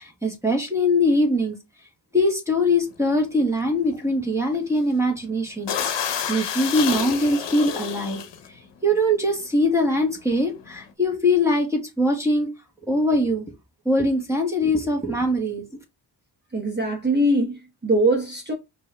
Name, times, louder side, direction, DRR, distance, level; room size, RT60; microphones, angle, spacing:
voice 1, 0.0-1.6 2.1-8.2 8.8-12.5 12.9-13.5 13.8-15.6, left 1 dB, 5° right, 1.6 m, -22 dB
sound 1, 2.7-2.9 3.4-3.6 3.8-4.0 4.5-4.9 5.2-5.3 5.6-8.5 9.2-9.4 9.7-10.9, left 8 dB, 70° left, 0.9 m, -29 dB
voice 2, 16.5-18.5, right 1 dB, 25° right, 1.1 m, -22 dB
5.2 x 2.7 x 3.4 m
cardioid pair, 100°, 43 cm